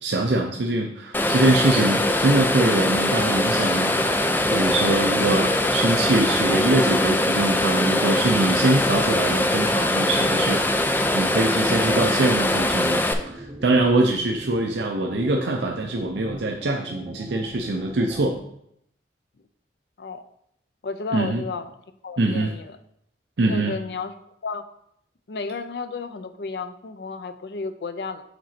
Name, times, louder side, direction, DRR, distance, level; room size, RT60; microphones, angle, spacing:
voice 1, 0.0-4.0 4.5-18.4 21.1-21.4 22.2-22.5 23.4-23.7, right 2 dB, 75° right, 1 dB, 0.6 m, -23 dB
sound 1, 1.1-13.1, left 1 dB, 10° left, 0.4 m, -22 dB
sound 2, 3.9-18.4, right 1 dB, 20° right, 2.8 m, -40 dB
voice 2, 20.8-21.7 22.0-22.8 23.5-24.1 24.4-24.6 25.3-28.2, left 4 dB, 65° left, 9 dB, 0.5 m, -32 dB
5.1 x 4.0 x 5.9 m, 0.73 s
head